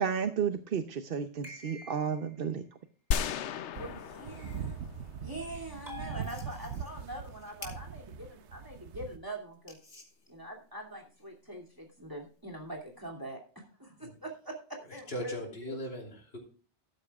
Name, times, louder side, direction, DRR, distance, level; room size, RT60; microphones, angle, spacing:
voice 1, 0.0-2.6, right 7 dB, 55° right, 8 dB, 0.9 m, -32 dB
sound 1, 1.4-2.4 5.9-7.1, left 1 dB, 40° right, 4.8 m, -47 dB
sound 2, 3.1-5.4, left 7 dB, 85° left, 1.0 m, -35 dB
voice 2, 3.7-4.8 5.2-9.8 10.3-15.8, right 1 dB, 20° right, 1 dB, 2.7 m, -43 dB
sound 3, 3.7-9.2, right 7 dB, 90° right, 1.0 m, -42 dB
voice 3, 15.1-16.4, equal, 60° left, 0 dB, 3.3 m, -39 dB
13.5 x 12.0 x 2.4 m, 0.39 s
omnidirectional pair, 1.1 m